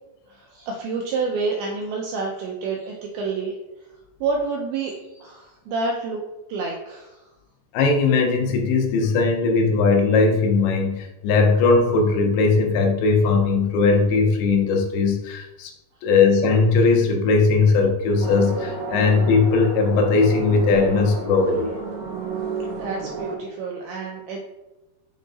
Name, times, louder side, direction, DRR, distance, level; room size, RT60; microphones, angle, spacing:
voice 1, 0.3-3.5 4.2-6.2 6.5-7.2 22.8-24.4, right 4 dB, 90° right, 0 dB, 2.2 m, -28 dB
voice 2, 7.7-15.7 16.0-21.7, left 4 dB, 80° left, 3 dB, 3.2 m, -19 dB
sound 1, 18.2-23.4, right 4 dB, 70° right, 2.7 m, -31 dB
7.0 x 4.6 x 4.1 m, 1.0 s
omnidirectional pair, 5.2 m